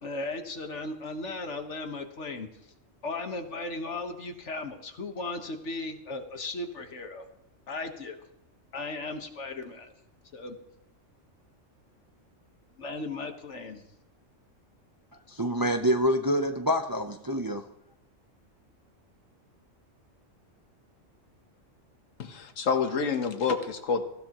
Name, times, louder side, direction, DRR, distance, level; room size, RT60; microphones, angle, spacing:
voice 1, 0.0-2.7 3.0-7.3 7.7-8.2 8.7-9.9 10.3-10.6 12.8-13.9, left 3 dB, 65° left, 1.7 m, -36 dB
voice 2, 15.3-17.7, equal, 25° right, 0.6 m, -26 dB
voice 3, 22.2-24.0, left 5 dB, 85° left, 1.6 m, -28 dB
18.5 x 15.5 x 3.0 m
omnidirectional pair, 1.3 m